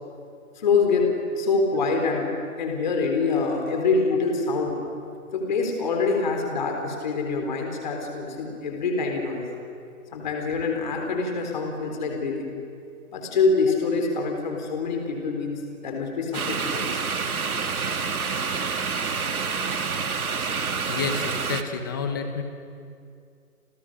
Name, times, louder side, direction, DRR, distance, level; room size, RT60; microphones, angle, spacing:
voice 1, 0.6-2.3 2.6-4.8 5.3-9.5 10.1-12.6 13.1-17.0, left 4 dB, 30° left, 2 dB, 3.8 m, -25 dB
sound 1, 16.3-21.6, right 5 dB, 85° right, 2.2 m, -28 dB
voice 2, 20.9-22.4, left 5 dB, 15° left, 6 dB, 1.2 m, -29 dB
29.5 x 29.5 x 6.5 m, 2.4 s
hypercardioid pair, 170°, 42 cm